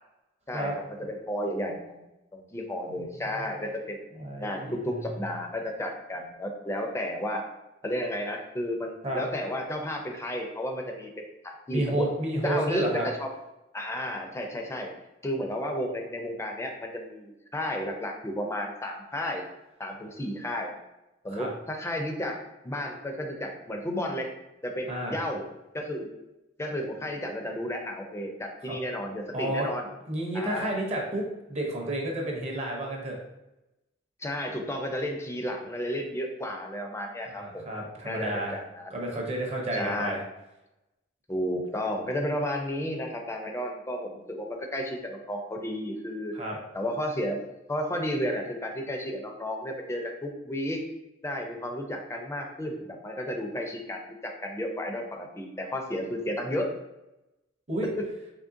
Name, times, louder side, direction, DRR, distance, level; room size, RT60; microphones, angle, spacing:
voice 1, 1.0-2.0 2.3-4.0 4.4-7.5 7.8-12.1 12.4-13.3 13.7-14.9 15.2-19.4 19.8-20.7 21.2-22.4 22.6-24.3 24.6-25.4 25.7-26.1 26.6-29.9 30.3-30.7 34.2-37.6 38.1-39.0 39.7-40.2 41.3-46.3 46.7-50.8 51.2-56.7 58.0-58.1, equal, 15° left, 2 dB, 0.4 m, -32 dB
voice 2, 4.1-4.8 9.0-9.2 11.7-13.1 21.3-21.5 24.9-25.2 28.7-28.8 29.3-29.7 30.1-33.2 37.3-38.6 38.9-40.2 46.3-46.6 57.7-57.9, right 1 dB, 35° right, 0 dB, 0.7 m, -31 dB
3.6 x 3.1 x 2.6 m, 0.94 s
head